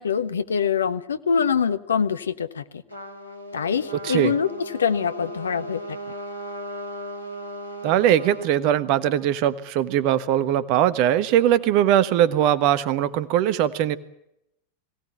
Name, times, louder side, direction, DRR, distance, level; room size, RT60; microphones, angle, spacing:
voice 1, 0.0-2.8 3.5-5.8, left 7 dB, 70° left, 12 dB, 1.2 m, -24 dB
Trumpet, 2.9-8.5, equal, 85° left, 3.7 m, -36 dB
voice 2, 7.8-14.0, right 11 dB, 45° right, 15 dB, 1.3 m, -20 dB
22.0 x 17.0 x 9.0 m, 0.81 s
figure-of-eight pair, 90°, 0 cm